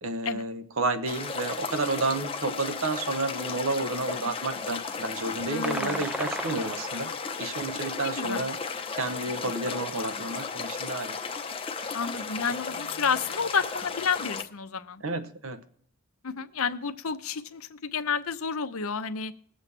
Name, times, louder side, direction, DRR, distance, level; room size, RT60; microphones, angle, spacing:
voice 1, 0.0-8.6 8.9-11.2 15.0-15.6, right 2 dB, 60° right, 10 dB, 0.9 m, -31 dB
sound 1, 1.0-14.4, left 5 dB, 25° left, 0.7 m, -35 dB
voice 2, 5.5-6.0 7.9-8.4 11.9-15.0 16.2-19.3, left 6 dB, 70° left, 10 dB, 0.7 m, -30 dB
sound 2, 5.6-7.3, right 1 dB, 5° right, 0.5 m, -35 dB
21.5 x 7.6 x 3.3 m, 0.64 s
head